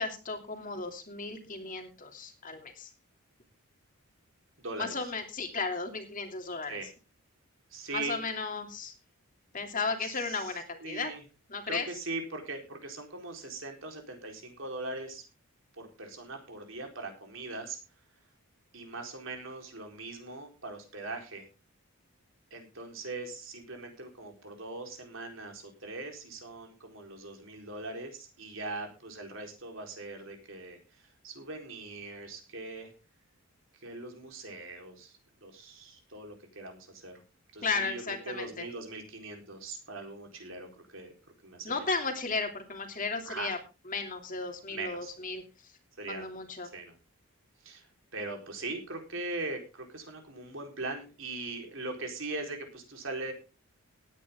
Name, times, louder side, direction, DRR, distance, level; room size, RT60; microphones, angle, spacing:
voice 1, 0.0-2.9 4.8-6.8 7.9-8.9 9.5-11.1 11.5-11.9 37.6-38.7 41.6-43.6 43.9-45.4 46.1-46.7, left 4 dB, 35° left, 4 dB, 2.7 m, -34 dB
voice 2, 4.6-5.1 6.7-6.9 7.7-8.2 10.0-11.2 11.7-15.2 15.8-17.8 18.7-21.5 22.5-32.9 33.8-37.2 37.5-41.1 41.4-41.9 43.2-43.5 44.7-45.1 46.0-46.3 46.6-46.9 47.6-47.9 48.1-53.3, right 2 dB, 60° right, 3 dB, 4.2 m, -41 dB
18.0 x 9.8 x 3.7 m, 0.32 s
head